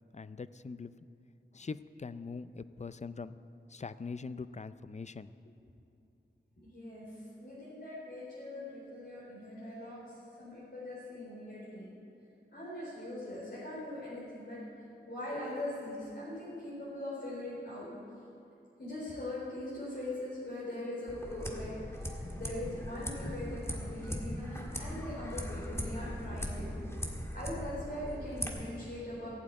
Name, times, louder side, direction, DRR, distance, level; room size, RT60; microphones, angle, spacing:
voice 1, 0.1-0.9 1.5-3.4 3.7-5.5, left 4 dB, 35° left, 14 dB, 0.4 m, -42 dB
voice 2, 6.6-11.9 12.5-17.9 18.8-26.7 27.3-29.3, left 1 dB, 65° left, -9 dB, 4.3 m, -41 dB
sound 1, 21.1-28.5, equal, 15° left, 1.6 m, -39 dB
15.5 x 7.5 x 8.7 m, 2.7 s
wide cardioid pair, 75°, 19 cm